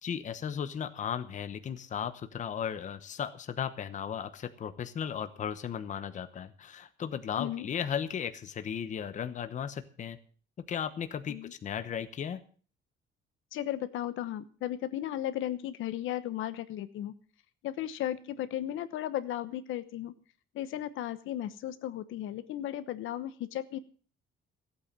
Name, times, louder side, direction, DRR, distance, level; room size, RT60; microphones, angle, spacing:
voice 1, 0.0-10.2 10.7-12.4, left 8 dB, 40° left, 11 dB, 1.0 m, -36 dB
voice 2, 13.5-17.1 17.6-20.1 20.5-23.8, left 12 dB, 80° left, 12 dB, 1.0 m, -35 dB
15.0 x 8.6 x 7.4 m, 0.42 s
cardioid pair, 160°, 20 cm